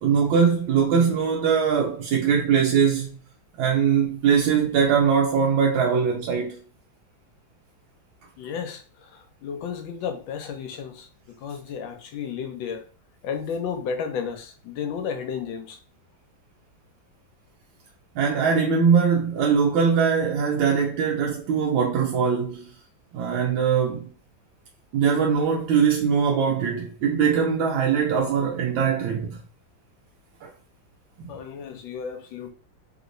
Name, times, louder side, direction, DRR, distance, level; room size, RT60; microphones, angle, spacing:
voice 1, 0.0-3.2 3.6-6.6 18.2-22.7 23.1-24.1 24.9-29.4 30.4-30.5 31.2-31.3, right 6 dB, 85° right, 1.4 m, -21 dB
voice 2, 8.4-11.1 11.4-12.9 13.2-15.8 31.3-32.5, left 7 dB, 80° left, 1.3 m, -33 dB
3.4 x 2.9 x 2.5 m
omnidirectional pair, 2.1 m